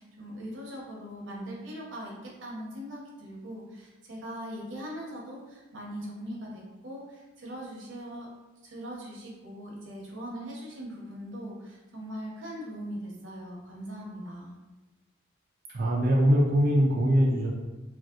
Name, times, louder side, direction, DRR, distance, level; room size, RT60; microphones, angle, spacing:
voice 1, 0.0-8.3 8.6-14.6, equal, 75° right, -3 dB, 0.8 m, -40 dB
voice 2, 15.7-17.5, equal, 50° right, -3 dB, 0.3 m, -22 dB
3.1 x 2.6 x 2.4 m, 1.1 s
head